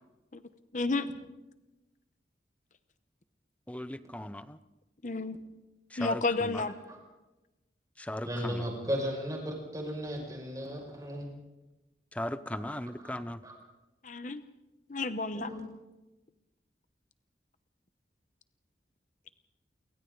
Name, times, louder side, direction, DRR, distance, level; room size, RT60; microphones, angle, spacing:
voice 1, 0.7-1.1 5.0-5.4 6.0-6.7 14.0-14.4 14.9-15.5, left 3 dB, 45° left, 11 dB, 0.9 m, -31 dB
voice 2, 3.7-4.6 5.9-6.6 8.0-8.6 12.1-13.4, left 1 dB, 10° left, 13 dB, 0.7 m, -37 dB
voice 3, 8.2-11.3 12.5-12.6 13.0-13.2 13.4-13.5 15.3-15.6, equal, 20° right, 0 dB, 6.1 m, -35 dB
29.5 x 24.0 x 4.0 m, 1.0 s
head